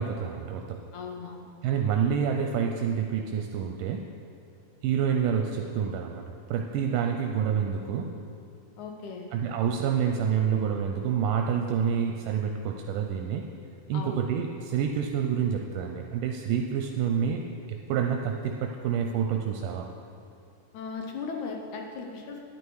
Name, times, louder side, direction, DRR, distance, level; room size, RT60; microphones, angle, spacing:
voice 1, 0.0-0.8 1.6-4.1 4.8-8.2 9.3-13.5 13.9-17.4 17.7-19.9, right 7 dB, 80° right, 3 dB, 2.1 m, -28 dB
voice 2, 0.9-1.5 8.8-9.3 13.9-14.2 20.7-22.4, left 4 dB, 70° left, 2 dB, 2.1 m, -37 dB
10.5 x 9.6 x 4.7 m, 2.5 s
omnidirectional pair, 3.8 m